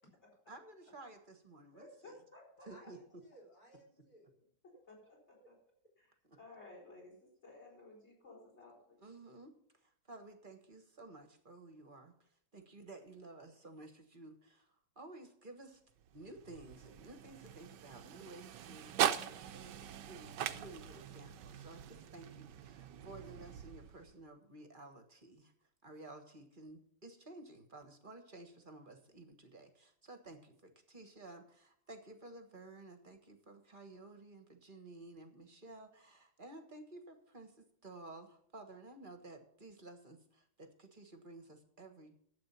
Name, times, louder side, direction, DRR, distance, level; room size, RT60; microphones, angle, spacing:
voice 1, 0.5-2.2 2.7-3.2 6.2-6.4 9.0-15.8 16.1-25.5 25.8-42.1, right 2 dB, 30° right, 6 dB, 1.3 m, -54 dB
voice 2, 1.7-2.9 4.9-5.2 5.5-5.6 6.0-6.1 6.4-9.0, left 2 dB, 35° left, -2 dB, 5.1 m, -56 dB
voice 3, 2.6-4.5 4.7-4.8 5.4-5.5, right 1 dB, 50° left, 0 dB, 4.0 m, -61 dB
sound 1, 16.0-24.2, right 10 dB, 70° right, 1.3 m, -41 dB
11.5 x 8.4 x 5.7 m, 0.65 s
omnidirectional pair, 2.1 m